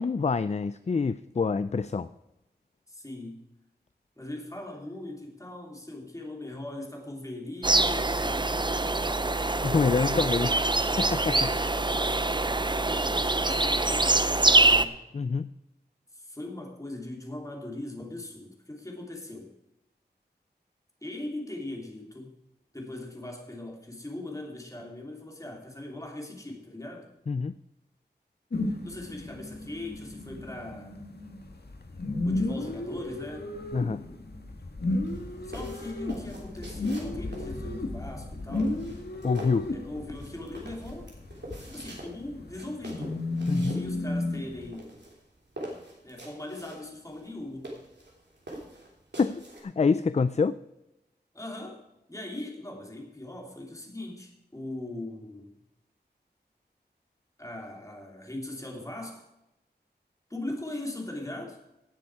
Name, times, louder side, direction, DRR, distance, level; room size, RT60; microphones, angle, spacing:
voice 1, 0.0-2.1 9.6-10.5 11.0-11.5 15.1-15.5 27.3-27.5 33.7-34.0 39.2-39.7 43.5-43.8 49.2-50.6, left 4 dB, 40° left, 14 dB, 0.4 m, -26 dB
voice 2, 2.9-3.4 4.2-9.3 10.2-10.6 11.4-12.4 12.7-14.9 16.1-19.5 21.0-22.3 22.7-27.1 28.8-31.0 32.2-33.5 35.4-38.8 39.7-41.1 41.6-43.2 43.7-44.9 46.0-47.7 51.3-51.8 52.1-55.6 57.4-59.3 60.3-61.6, left 1 dB, 20° left, 1 dB, 3.0 m, -40 dB
sound 1, 7.6-14.8, right 2 dB, 25° right, 0.6 m, -24 dB
sound 2, 28.5-44.7, left 2 dB, 65° left, 1.6 m, -34 dB
sound 3, 34.9-49.6, right 1 dB, 80° right, 3.4 m, -45 dB
17.5 x 7.0 x 4.8 m, 0.92 s
wide cardioid pair, 65°, 18 cm